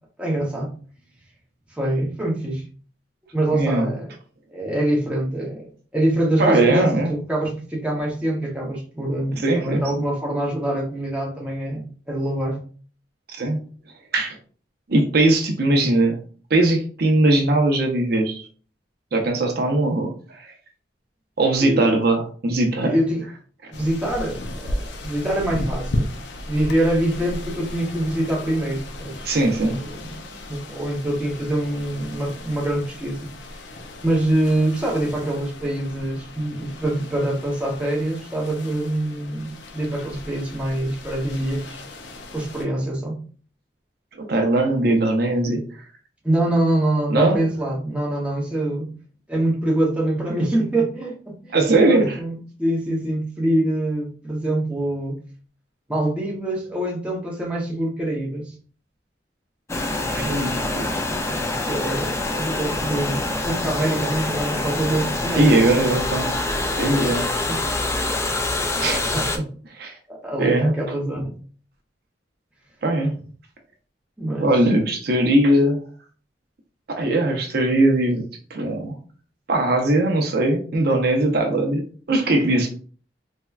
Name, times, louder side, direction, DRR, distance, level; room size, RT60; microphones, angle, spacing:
voice 1, 0.2-0.7 1.7-2.6 3.3-4.1 4.5-5.7 5.9-12.6 21.6-22.0 22.8-23.2 23.7-26.1 26.5-29.3 29.6-33.3 34.0-41.8 42.3-43.2 46.2-48.9 49.3-55.2 55.9-58.5 61.7-65.6 67.5-67.6 69.1-69.3 70.1-71.3 74.2-74.5, right 1 dB, 5° right, 0.7 m, -25 dB
voice 2, 3.5-3.9 6.4-7.1 9.4-9.8 13.4-13.6 14.1-14.4 14.9-16.2 16.5-18.4 19.1-20.4 21.4-22.9 29.2-29.7 44.2-45.6 47.1-47.4 51.5-52.2 60.1-60.8 65.3-66.4 66.8-67.3 68.8-69.0 69.3-69.4 69.8-69.9 70.4-70.7 72.8-73.2 74.4-75.8 76.9-78.3 78.5-78.9 79.5-82.7, right 2 dB, 60° right, 0.6 m, -20 dB
sound 1, 23.7-42.7, left 1 dB, 80° left, 0.5 m, -35 dB
sound 2, 59.7-69.4, left 2 dB, 15° left, 0.3 m, -25 dB
4.3 x 2.2 x 2.3 m
head